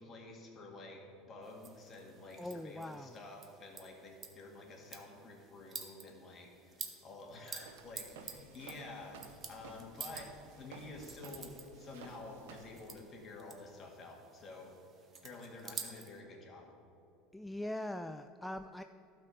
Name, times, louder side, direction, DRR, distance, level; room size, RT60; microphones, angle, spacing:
voice 1, 0.0-9.2 9.5-14.7 15.2-16.7, left 2 dB, 35° left, 1 dB, 2.0 m, -50 dB
sound 1, 1.4-16.2, right 6 dB, 35° right, 1.1 m, -51 dB
voice 2, 2.4-3.2 17.3-18.8, left 1 dB, 5° left, 9 dB, 0.3 m, -41 dB
Walk footsteps, 7.6-12.8, right 5 dB, 75° right, 0.8 m, -55 dB
12.0 x 4.5 x 6.3 m, 2.8 s
hypercardioid pair, 80°, 0 cm